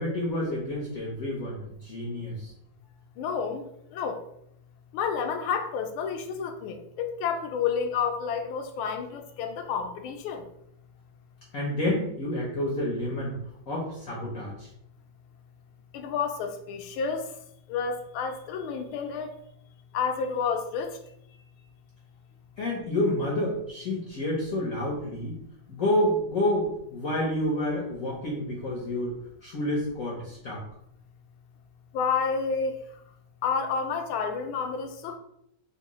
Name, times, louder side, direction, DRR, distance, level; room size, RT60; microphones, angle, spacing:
voice 1, 0.0-2.5 11.5-13.4 13.7-14.7 22.6-25.3 25.7-29.1 29.4-30.6, left 1 dB, 65° left, -3 dB, 0.8 m, -29 dB
voice 2, 3.2-3.6 3.9-4.2 4.9-10.4 15.9-17.2 17.7-19.3 19.9-20.9 31.9-32.7 33.4-35.2, left 6 dB, 85° left, 5 dB, 1.4 m, -30 dB
3.5 x 2.7 x 3.0 m, 0.75 s
omnidirectional pair, 2.2 m